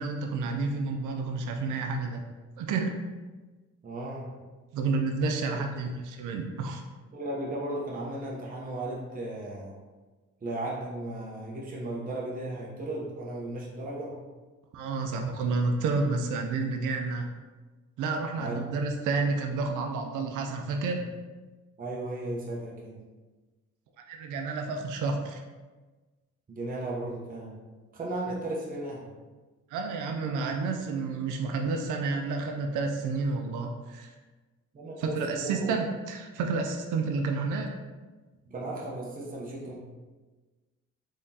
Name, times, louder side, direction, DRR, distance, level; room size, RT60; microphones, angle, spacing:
voice 1, 0.0-2.2 2.6-3.0 4.7-6.8 14.7-17.3 18.0-21.1 24.1-25.4 29.7-34.1 35.0-37.7, right 4 dB, 80° right, 3 dB, 0.5 m, -30 dB
voice 2, 3.8-4.5 5.4-5.6 7.1-9.8 10.4-14.1 18.4-18.8 21.8-23.0 26.5-27.6 27.9-29.1 34.7-35.7 38.4-39.8, right 1 dB, 30° right, -4 dB, 0.8 m, -35 dB
3.6 x 3.5 x 2.7 m, 1.3 s
cardioid pair, 90°, 30 cm